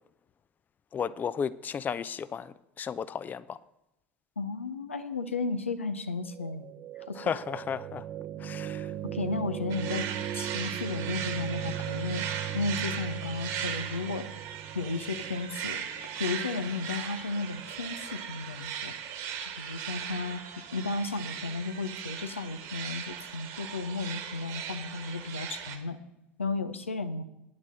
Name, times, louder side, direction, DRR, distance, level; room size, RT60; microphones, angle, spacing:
voice 1, 0.9-3.6 7.2-8.1 8.4-8.9, left 7 dB, 25° left, 16 dB, 0.4 m, -34 dB
voice 2, 4.4-6.7 7.1-7.3 9.1-10.1 10.3-14.3 14.7-15.8 16.2-18.9 19.4-20.4 20.7-26.0 26.4-27.2, left 3 dB, 90° left, 9 dB, 0.7 m, -34 dB
sound 1, 6.2-18.3, right 10 dB, 40° right, 0.7 m, -39 dB
sound 2, 9.7-25.8, right 8 dB, 60° right, 1.6 m, -38 dB
9.5 x 6.0 x 7.4 m, 0.89 s
figure-of-eight pair, 75°, 7 cm